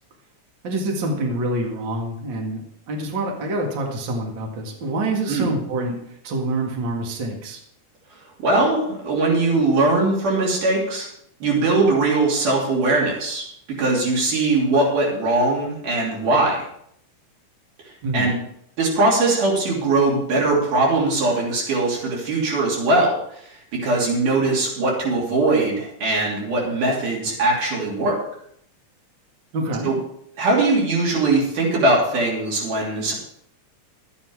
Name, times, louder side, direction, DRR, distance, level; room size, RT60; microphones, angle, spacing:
voice 1, 0.6-6.0 6.2-7.6 18.0-18.3 29.5-29.9, right 2 dB, 40° right, 0 dB, 2.3 m, -26 dB
voice 2, 8.4-11.1 11.4-13.5 13.8-16.6 18.1-18.4 18.8-23.2 23.8-28.2 29.8-30.0 30.4-33.1, right 2 dB, 85° right, -3 dB, 4.7 m, -20 dB
12.0 x 9.6 x 4.8 m, 0.70 s
omnidirectional pair, 3.6 m